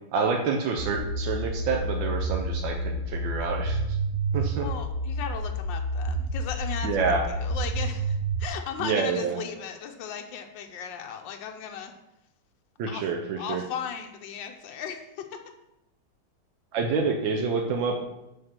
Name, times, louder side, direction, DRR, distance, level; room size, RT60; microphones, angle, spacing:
voice 1, 0.1-3.8 4.3-4.7 6.8-7.2 8.8-9.4 12.8-13.6 16.7-18.0, right 5 dB, 85° right, 2 dB, 1.5 m, -27 dB
sound 1, 0.8-8.5, right 2 dB, 55° right, 0.9 m, -29 dB
voice 2, 4.6-11.9 12.9-13.0 13.4-15.4, left 7 dB, 85° left, 4 dB, 1.4 m, -36 dB
8.6 x 3.6 x 5.8 m, 0.90 s
omnidirectional pair, 2.0 m